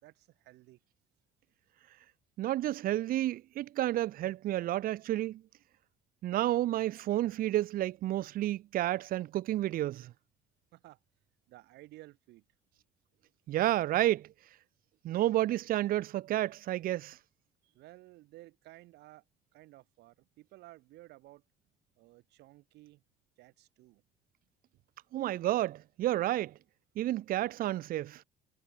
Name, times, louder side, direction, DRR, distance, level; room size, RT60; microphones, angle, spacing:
voice 1, 0.0-0.8 10.7-11.0 11.5-12.4 17.6-19.2 19.5-21.4 22.0-23.0 23.4-24.0, right 18 dB, 85° right, 4.2 m, -55 dB
voice 2, 2.4-5.4 6.2-10.1 13.5-14.3 15.0-17.2 25.1-26.5 27.0-28.2, right 14 dB, 60° right, 0.5 m, -30 dB
cardioid pair, 110°, 17 cm